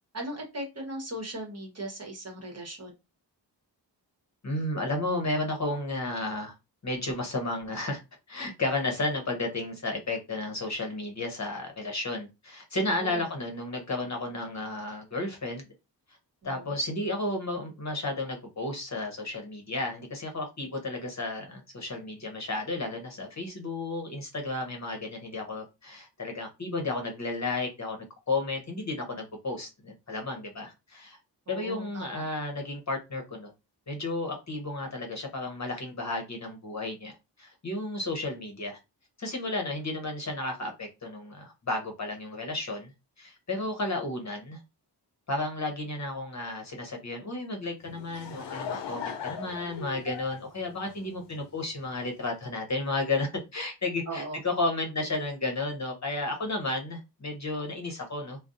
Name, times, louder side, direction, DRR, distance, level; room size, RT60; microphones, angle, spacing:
voice 1, 0.1-2.9 13.0-13.3 16.4-16.7 31.5-32.0 54.1-54.4, right 1 dB, 35° right, 0 dB, 1.0 m, -38 dB
voice 2, 4.4-6.5 6.8-8.0 8.3-15.6 16.4-31.2 31.5-33.5 33.9-37.1 37.4-38.8 39.2-42.9 43.2-44.6 45.3-58.4, left 2 dB, 40° left, 3 dB, 0.8 m, -33 dB
Laughter / Crowd, 47.8-51.6, left 7 dB, 80° left, 0.5 m, -39 dB
2.4 x 2.0 x 2.6 m, 0.25 s
cardioid pair, 60°, 42 cm